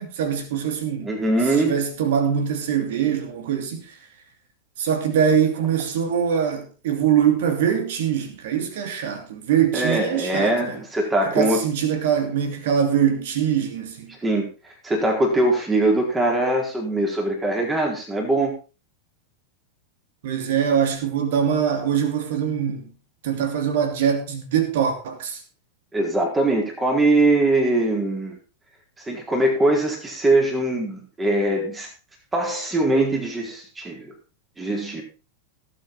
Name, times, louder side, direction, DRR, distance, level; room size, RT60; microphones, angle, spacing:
voice 1, 0.0-1.2 1.6-3.8 4.8-10.8 11.3-14.1 20.2-22.9 23.2-25.4, right 8 dB, 55° right, 2.9 m, -23 dB
voice 2, 1.0-1.8 9.7-11.6 14.2-14.5 14.8-18.5 25.9-28.4 29.0-31.9 32.3-34.1 34.6-35.0, right 2 dB, 15° right, 4.4 m, -22 dB
18.0 x 8.3 x 4.1 m
figure-of-eight pair, 90°, 0 cm